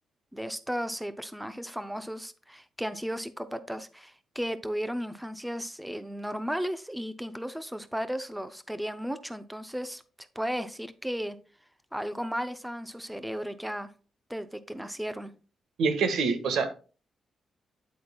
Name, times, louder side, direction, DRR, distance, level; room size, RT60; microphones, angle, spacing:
voice 1, 0.3-11.4 11.9-13.9 14.3-15.3, equal, 5° right, 11 dB, 0.5 m, -35 dB
voice 2, 15.8-16.7, right 4 dB, 85° right, 8 dB, 1.5 m, -26 dB
9.4 x 8.2 x 2.2 m, 0.35 s
wide cardioid pair, 170°, 0 cm